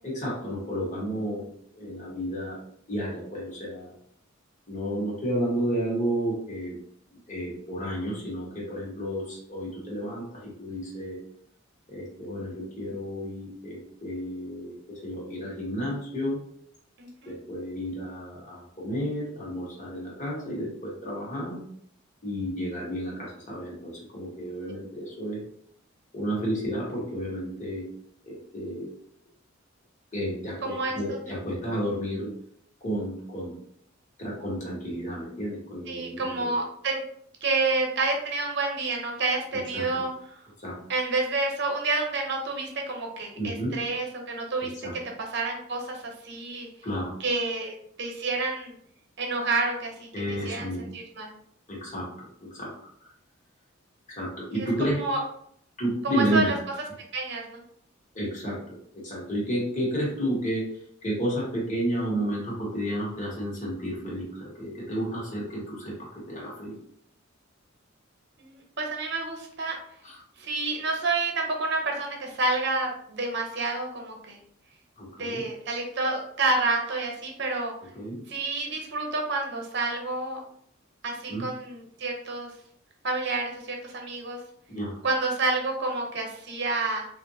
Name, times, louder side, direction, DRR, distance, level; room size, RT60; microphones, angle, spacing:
voice 1, 0.0-1.5 1.7-2.6 2.9-3.9 4.7-6.8 7.3-11.2 11.9-16.4 17.2-21.6 22.2-25.4 26.1-27.9 28.2-28.9 30.1-32.3 32.8-33.5 34.2-36.6 39.5-40.0 40.6-40.8 43.4-43.7 44.6-44.9 46.8-47.6 50.1-50.9 51.7-52.7 53.0-53.1 54.1-55.2 55.8-56.5 58.1-58.8 59.0-66.8 70.0-70.2 70.6-70.8 75.0-75.5 77.9-78.2 81.3-81.5 84.7-85.0, equal, 35° left, -5 dB, 1.3 m, -32 dB
voice 2, 17.0-17.3 30.6-31.2 35.9-37.0 37.4-40.1 40.9-44.7 45.3-46.7 47.2-48.7 49.2-51.3 55.0-55.2 56.2-56.5 57.1-57.6 68.4-69.7 70.4-74.4 75.2-77.7 78.3-80.4 81.0-82.5 83.0-84.4 85.0-87.1, right 3 dB, 60° right, 1 dB, 0.8 m, -29 dB
3.6 x 2.5 x 2.7 m, 0.67 s
head